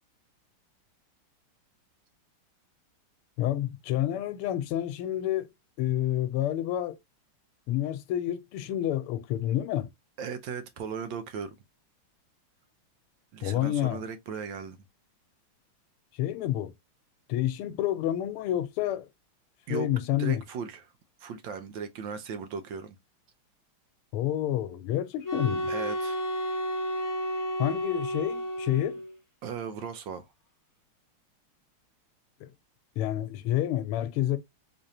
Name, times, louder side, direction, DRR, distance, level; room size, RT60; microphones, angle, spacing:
voice 1, 3.4-5.5 5.8-7.0 7.7-9.9 13.4-14.0 16.1-16.7 17.3-19.1 19.7-20.4 24.1-25.7 27.6-29.0 32.4-32.5 33.0-34.4, left 12 dB, 90° left, 1.5 m, -29 dB
voice 2, 10.2-11.6 13.3-14.8 19.7-19.9 20.2-20.9 21.2-23.0 25.7-26.3 29.4-30.3, right 6 dB, 70° right, 1.3 m, -37 dB
sound 1, 25.2-29.1, equal, 15° left, 0.7 m, -31 dB
3.9 x 3.3 x 2.8 m
omnidirectional pair, 2.4 m